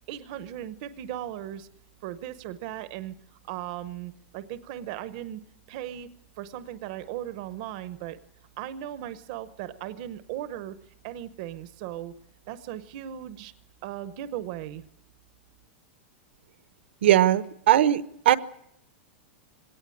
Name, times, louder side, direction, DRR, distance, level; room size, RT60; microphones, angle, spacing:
voice 1, 0.1-1.7 2.0-3.1 3.5-5.4 5.7-6.1 6.4-8.2 8.6-10.8 11.0-12.1 12.5-13.5 13.8-14.8, right 12 dB, 35° right, 13 dB, 0.8 m, -37 dB
voice 2, 17.0-18.4, right 12 dB, 65° right, 15 dB, 1.0 m, -20 dB
21.5 x 17.5 x 8.5 m, 0.78 s
supercardioid pair, 175°, 7 cm